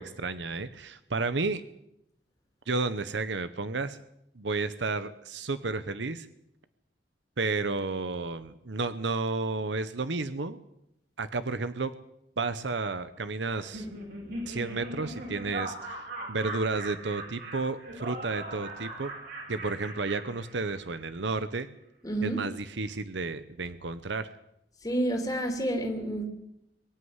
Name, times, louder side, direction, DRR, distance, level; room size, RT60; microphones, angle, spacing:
voice 1, 0.0-1.6 2.7-4.0 4.4-6.3 7.4-10.6 11.2-11.9 12.4-13.9 14.5-19.1 19.5-21.7 22.2-24.3, right 3 dB, 90° right, 12 dB, 1.0 m, -32 dB
Laughter, 13.5-21.0, right 1 dB, 65° right, 7.7 m, -40 dB
voice 2, 22.0-22.4 24.8-26.3, right 1 dB, 20° left, 2 dB, 2.8 m, -29 dB
23.5 x 11.5 x 9.6 m, 0.80 s
head